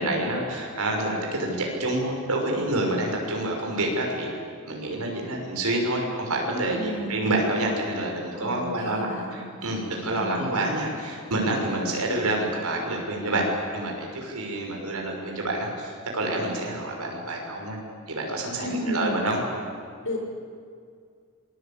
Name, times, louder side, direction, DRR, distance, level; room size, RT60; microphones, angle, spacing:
voice 1, 0.0-4.3 4.7-13.5 13.7-17.8 18.1-19.4, right 1 dB, 90° right, 0 dB, 6.0 m, -28 dB
voice 2, 6.7-7.2 8.3-9.3 10.1-10.6 11.7-12.1 18.6-19.1 20.0-20.2, left 1 dB, 60° left, 0 dB, 6.4 m, -33 dB
27.5 x 21.5 x 9.0 m, 2.2 s
head